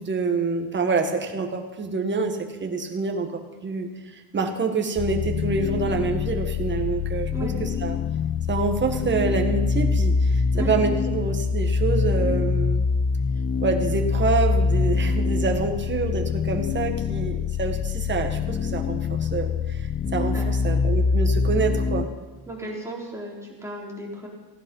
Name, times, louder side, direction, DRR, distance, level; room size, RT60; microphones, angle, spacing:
voice 1, 0.0-7.3 7.6-8.0 8.5-12.9 13.6-22.1, right 4 dB, 25° right, 3 dB, 1.7 m, -27 dB
sound 1, 5.0-22.0, left 5 dB, 25° left, 0.6 m, -24 dB
voice 2, 22.5-24.3, right 1 dB, 5° right, -4 dB, 4.0 m, -34 dB
16.0 x 10.5 x 5.5 m, 1.3 s
cardioid pair, 115°, 42 cm